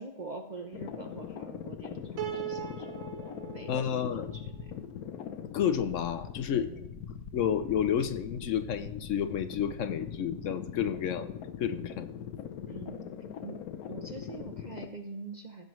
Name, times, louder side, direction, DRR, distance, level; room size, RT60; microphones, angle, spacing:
voice 1, 0.0-4.7 6.5-6.9 12.7-13.1 13.4-13.6 13.9-15.7, right 3 dB, 45° right, 4 dB, 0.6 m, -44 dB
sound 1, 0.7-14.9, left 8 dB, 80° left, 1.2 m, -41 dB
Piano, 2.2-5.4, right 11 dB, 70° right, 1.2 m, -41 dB
voice 2, 3.7-4.3 5.2-6.7 7.3-11.3 11.6-12.1, left 9 dB, 65° left, 10 dB, 0.9 m, -30 dB
16.0 x 7.6 x 3.1 m, 0.87 s
omnidirectional pair, 1.5 m